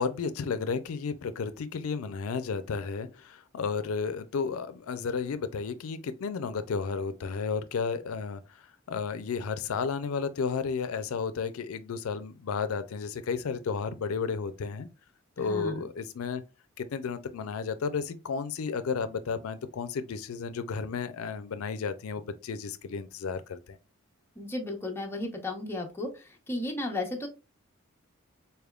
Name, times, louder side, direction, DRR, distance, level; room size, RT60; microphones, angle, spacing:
voice 1, 0.0-8.4 8.9-14.9 15.4-16.4 16.8-23.8, left 5 dB, 85° left, 0.4 m, -32 dB
voice 2, 15.4-15.8 24.4-27.3, left 2 dB, 10° left, 0.9 m, -34 dB
4.2 x 3.4 x 2.3 m
head